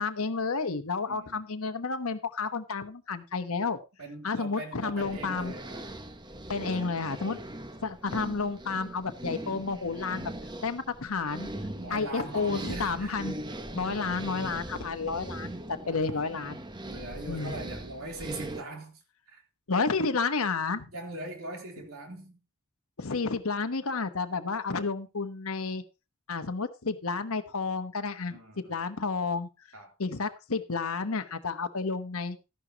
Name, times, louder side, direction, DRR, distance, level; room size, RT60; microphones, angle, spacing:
voice 1, 0.0-3.8 4.2-5.5 6.5-7.4 7.8-10.3 10.6-11.5 11.9-13.3 13.7-16.6 17.3-17.5 19.7-20.9 23.0-25.8 26.3-29.5 30.0-32.4, left 4 dB, 70° left, 1.1 m, -31 dB
voice 2, 1.1-1.4 4.0-6.0 11.7-13.2 15.8-16.2 16.8-19.0 19.3-19.4 20.9-22.4 28.3-28.8 29.7-29.9, right 2 dB, 70° right, 3.5 m, -41 dB
sound 1, 5.0-18.6, right 1 dB, 20° right, 1.0 m, -40 dB
13.5 x 11.0 x 2.9 m
head